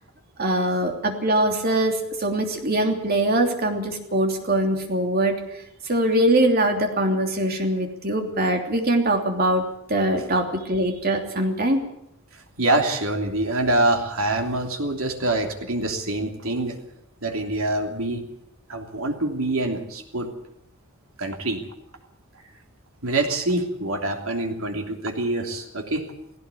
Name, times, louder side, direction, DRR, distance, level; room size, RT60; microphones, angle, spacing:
voice 1, 0.4-5.4 5.8-11.8, right 1 dB, 45° right, 3 dB, 3.1 m, -22 dB
voice 2, 12.6-16.8 17.2-18.2 18.7-20.3 21.2-21.6 23.0-26.0, right 2 dB, 75° right, 3 dB, 3.2 m, -25 dB
18.0 x 17.0 x 8.5 m, 0.80 s
head